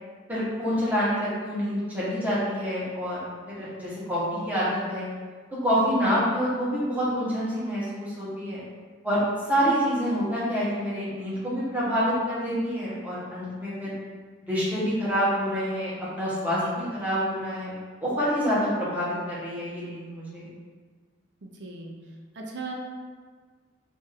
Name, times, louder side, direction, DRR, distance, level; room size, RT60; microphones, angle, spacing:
voice 1, 0.3-5.1 5.6-8.6 9.0-9.2 9.4-13.9 14.4-17.7 18.0-20.5, equal, 10° right, -9 dB, 0.9 m, -27 dB
voice 2, 3.6-3.9 21.4-21.9 22.4-22.7, right 3 dB, 60° right, 0 dB, 0.5 m, -38 dB
2.6 x 2.4 x 4.0 m, 1.5 s
head